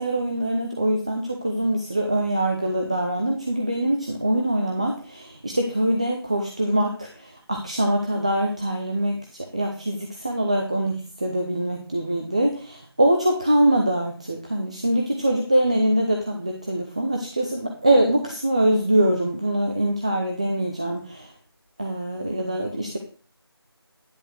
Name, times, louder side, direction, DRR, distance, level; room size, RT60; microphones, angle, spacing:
voice 1, 0.0-9.2 9.5-21.3 21.8-23.0, right 1 dB, 15° right, 2 dB, 0.5 m, -23 dB
10.5 x 6.2 x 4.6 m, 0.40 s
figure-of-eight pair, 170°, 13 cm